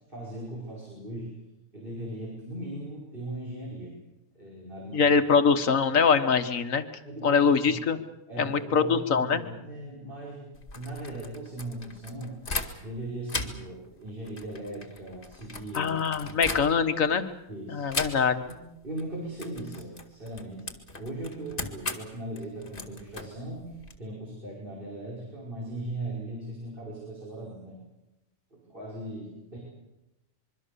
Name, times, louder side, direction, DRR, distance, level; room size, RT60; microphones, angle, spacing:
voice 1, 0.1-1.3 1.7-4.0 4.4-5.1 7.0-7.8 8.3-12.4 12.8-16.5 17.5-17.9 18.5-27.8 28.5-29.6, right 1 dB, 40° right, -4 dB, 5.8 m, -39 dB
voice 2, 4.9-6.8 7.2-8.0 8.4-9.4 15.7-17.3 17.7-18.4, left 6 dB, 75° left, 9 dB, 1.7 m, -23 dB
sound 1, 10.5-13.0 13.3-17.1 17.9-18.6 18.8-19.1 19.4-24.0, left 3 dB, 40° left, 2.3 m, -38 dB
25.5 x 23.0 x 6.9 m, 0.93 s
omnidirectional pair, 1.4 m